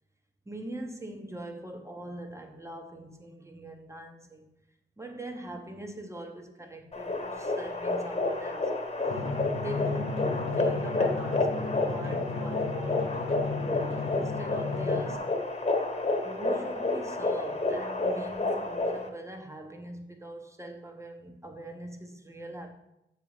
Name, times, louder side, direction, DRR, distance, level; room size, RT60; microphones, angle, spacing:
voice 1, 0.4-4.5 5.0-8.7 9.5-13.2 13.5-15.3 16.2-22.7, right 1 dB, 15° right, 1.1 m, -42 dB
sound 1, 6.9-19.1, left 2 dB, 30° left, 1.2 m, -30 dB
Drum, 9.1-15.2, left 4 dB, 85° left, 0.8 m, -34 dB
8.3 x 6.7 x 3.3 m
cardioid pair, 55°, 20 cm